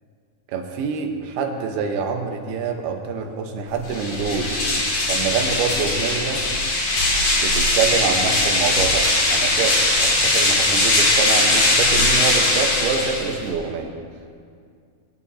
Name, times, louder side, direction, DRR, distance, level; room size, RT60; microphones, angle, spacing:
voice 1, 0.5-4.6 5.1-6.5 7.3-13.9, right 5 dB, 85° right, 3 dB, 3.1 m, -26 dB
sound 1, 3.8-13.5, left 2 dB, 55° left, 4.7 m, -20 dB
22.5 x 11.0 x 2.8 m, 2.2 s
omnidirectional pair, 4.4 m